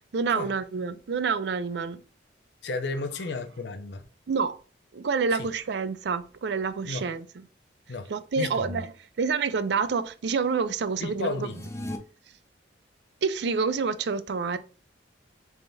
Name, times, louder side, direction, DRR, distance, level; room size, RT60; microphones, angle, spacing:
voice 1, 0.0-2.0 4.3-4.6 4.9-7.3 8.1-8.9 9.2-11.5 13.2-14.6, right 5 dB, 65° right, 0.4 m, -28 dB
voice 2, 2.6-4.0 5.3-5.5 6.8-7.1 7.9-8.8 11.0-11.6, left 3 dB, 65° left, 0.6 m, -33 dB
sound 1, 11.4-12.0, left 1 dB, 15° left, 0.5 m, -36 dB
3.5 x 3.4 x 3.9 m
head